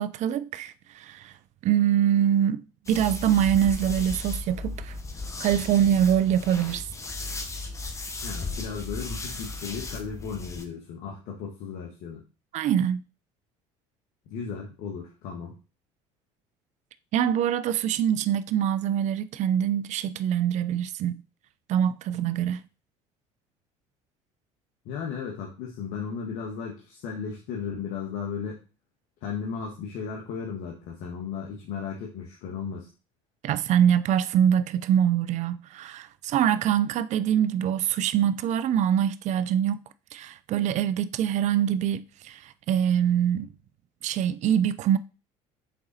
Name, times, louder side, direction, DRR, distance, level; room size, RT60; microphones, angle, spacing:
voice 1, 0.0-1.3 1.6-5.0 5.4-6.9 12.5-13.0 17.1-21.2 21.7-22.6 33.4-39.8 40.1-43.5 44.0-45.0, right 9 dB, 55° right, 0.5 m, -24 dB
sound 1, 2.9-10.7, left 3 dB, 20° left, 1.1 m, -36 dB
voice 2, 8.2-12.2 14.3-15.5 24.8-28.6 29.2-32.9, left 6 dB, 75° left, 1.6 m, -35 dB
6.7 x 4.0 x 4.1 m
supercardioid pair, 80°, 15 cm